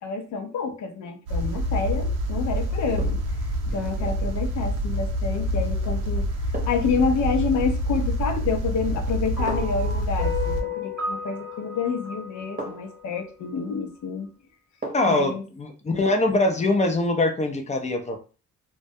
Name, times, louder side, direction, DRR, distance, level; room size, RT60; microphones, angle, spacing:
voice 1, 0.0-3.2 3.7-6.2 6.7-14.3 15.1-15.4, left 5 dB, 70° left, 6 dB, 0.6 m, -28 dB
sound 1, 1.3-10.6, equal, 80° right, 0.6 m, -26 dB
sound 2, 1.5-1.7 3.0-3.4 5.5-5.7 6.5-7.0 8.3-8.7 9.5-9.9 11.6-11.7 12.6-13.0 14.8-15.3 15.6-15.7, right 3 dB, 25° right, 0.8 m, -37 dB
sound 3, 9.4-13.7, left 4 dB, ahead, 1.0 m, -34 dB
voice 2, 14.9-18.2, left 2 dB, 25° left, 4 dB, 0.5 m, -23 dB
2.2 x 2.1 x 2.6 m, 0.35 s
cardioid pair, 90°, 30 cm